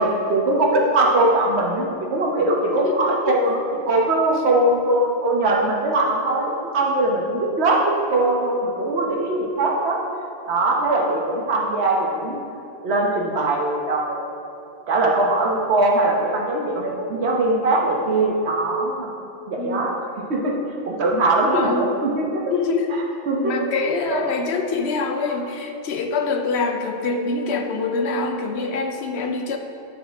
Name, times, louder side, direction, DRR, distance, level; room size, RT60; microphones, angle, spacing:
voice 1, 0.0-7.8 8.1-10.0 10.5-12.4 12.8-14.3 14.9-19.1 19.5-19.9 20.3-20.5 20.8-22.5 23.3-23.5 24.1-24.2, right 2 dB, 75° right, 0 dB, 1.2 m, -21 dB
voice 2, 2.8-3.3 19.6-19.8 21.4-21.9 22.5-23.0 23.4-29.6, left 4 dB, 80° left, 5 dB, 0.9 m, -25 dB
11.5 x 4.2 x 3.5 m, 2.6 s
omnidirectional pair, 1.1 m